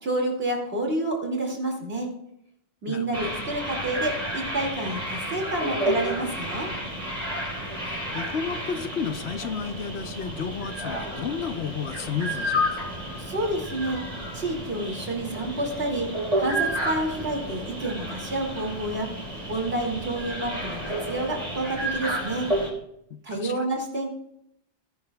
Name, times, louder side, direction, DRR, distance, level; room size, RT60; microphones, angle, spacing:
voice 1, 0.0-2.1 2.8-6.7 13.2-14.0 14.3-16.1 16.4-19.1 19.5-22.5 23.2-24.1, right 1 dB, 60° right, 1 dB, 2.6 m, -29 dB
voice 2, 2.9-3.4 7.9-12.9 23.1-23.7, left 6 dB, 70° left, 9 dB, 1.0 m, -32 dB
sound 1, 3.1-22.7, equal, 35° right, 4.0 m, -31 dB
19.0 x 10.5 x 2.3 m, 0.77 s
omnidirectional pair, 1.2 m